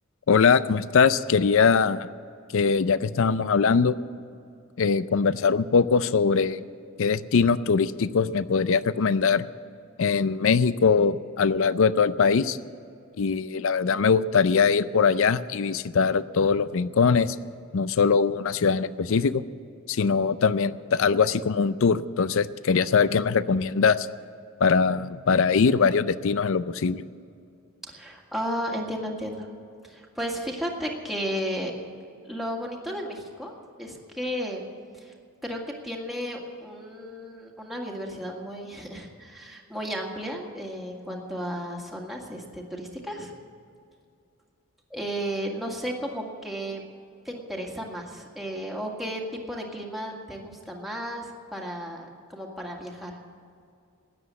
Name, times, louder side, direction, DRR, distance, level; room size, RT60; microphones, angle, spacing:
voice 1, 0.3-2.1 2.5-4.0 4.8-6.6 7.0-9.4 10.0-12.6 13.2-17.4 17.7-19.4 19.9-24.1 24.6-27.0, left 5 dB, 65° left, 15 dB, 0.5 m, -22 dB
voice 2, 27.8-29.5 29.8-31.7 32.2-33.5 33.8-34.6 34.9-35.1 35.4-43.3 44.9-46.8 47.3-53.2, equal, ahead, -1 dB, 1.9 m, -34 dB
14.0 x 9.9 x 8.3 m, 2.4 s
head